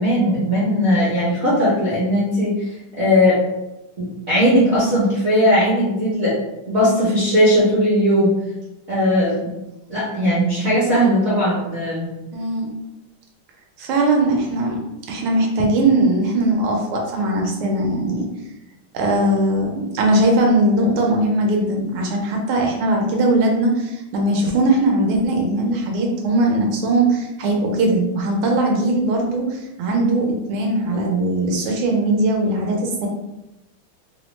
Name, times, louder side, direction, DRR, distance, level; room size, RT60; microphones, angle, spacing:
voice 1, 0.0-2.7 3.0-3.4 4.0-6.4 6.7-8.3 8.9-9.3 9.9-12.1, equal, 55° right, -8 dB, 0.7 m, -18 dB
voice 2, 12.3-12.7 13.8-14.8 15.1-18.3 18.9-33.1, right 2 dB, 85° right, 0 dB, 1.5 m, -20 dB
3.6 x 2.0 x 3.0 m, 0.96 s
omnidirectional pair, 2.3 m